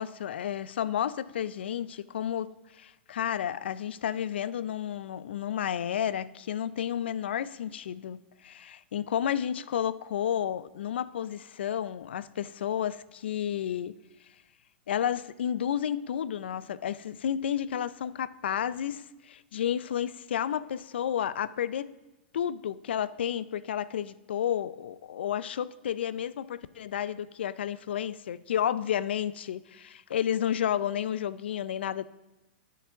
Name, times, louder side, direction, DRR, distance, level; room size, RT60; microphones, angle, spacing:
voice 1, 0.0-14.0 14.9-21.9 22.3-32.0, left 9 dB, 75° left, 0.5 m, -31 dB
10.5 x 6.0 x 7.0 m
hypercardioid pair, 110°, 6 cm